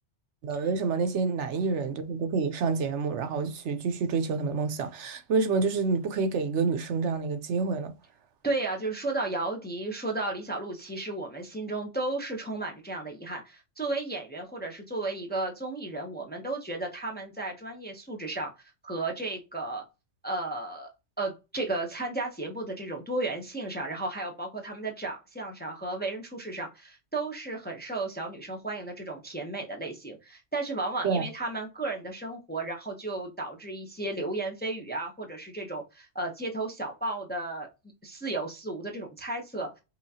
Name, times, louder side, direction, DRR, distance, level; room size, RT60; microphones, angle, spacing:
voice 1, 0.4-7.9 31.0-31.2, right 4 dB, 75° right, 1.0 m, -28 dB
voice 2, 8.4-18.5 18.8-19.8 20.2-20.9 21.2-37.7 38.0-39.7, right 2 dB, 10° left, 0.6 m, -34 dB
5.7 x 2.5 x 2.8 m
omnidirectional pair, 1.2 m